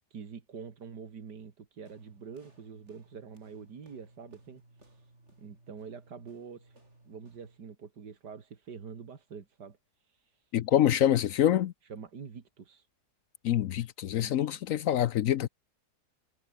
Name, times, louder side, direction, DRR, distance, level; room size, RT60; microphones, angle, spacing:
voice 1, 0.1-5.0 5.4-6.8 7.1-9.8 10.0-10.4 10.7-10.9 11.8-12.9 14.1-14.5, right 6 dB, 90° right, 2.7 m, -46 dB
sound 1, 1.8-7.6, right 2 dB, 40° right, 6.1 m, -60 dB
voice 2, 10.5-11.7 13.4-15.5, left 11 dB, 65° left, 0.9 m, -26 dB
omnidirectional pair, 1.7 m